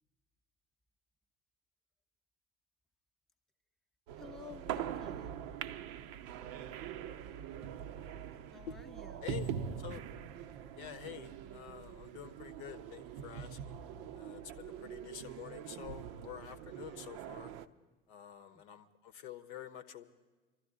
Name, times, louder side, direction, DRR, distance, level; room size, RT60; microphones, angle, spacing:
sound 1, 4.1-17.7, right 9 dB, 45° right, 0.6 m, -43 dB
voice 1, 4.2-5.3 8.5-9.3 18.5-18.6, left 6 dB, ahead, 3 dB, 0.8 m, -52 dB
voice 2, 10.8-13.8 14.1-17.5 18.1-20.0, left 11 dB, 55° left, 10 dB, 0.9 m, -48 dB
24.5 x 13.0 x 3.7 m, 1.2 s
figure-of-eight pair, 70°, 30 cm